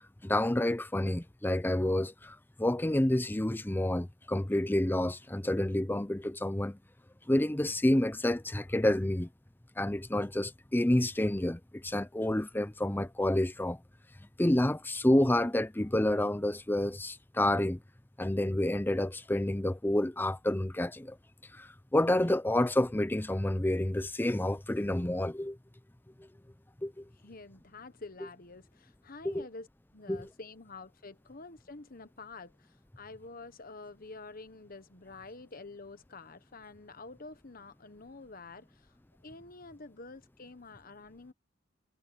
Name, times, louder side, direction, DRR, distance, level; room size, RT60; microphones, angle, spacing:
voice 1, 0.0-6.8 7.3-9.3 9.8-13.8 14.4-17.8 18.2-21.2 21.5-25.6 26.8-27.0 29.2-29.4 30.1-30.3, left 1 dB, 10° left, 0.6 m, -29 dB
voice 2, 27.1-39.0 39.2-41.3, left 3 dB, 50° left, 1.4 m, -48 dB
head